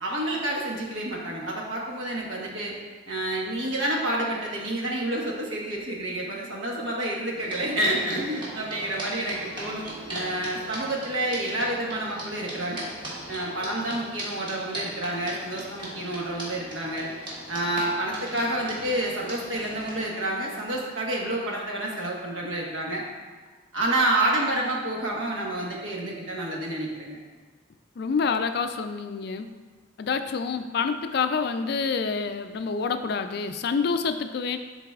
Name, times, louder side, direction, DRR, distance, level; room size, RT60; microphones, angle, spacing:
voice 1, 0.0-2.7 3.1-12.8 13.3-17.1 17.5-23.0 23.7-27.2, right 1 dB, 75° right, -2 dB, 1.3 m, -29 dB
sound 1, 7.4-20.0, right 1 dB, 25° right, 1.5 m, -39 dB
voice 2, 28.0-29.5 30.0-34.6, left 5 dB, 50° left, 8 dB, 0.3 m, -27 dB
11.5 x 4.0 x 2.4 m, 1.3 s
head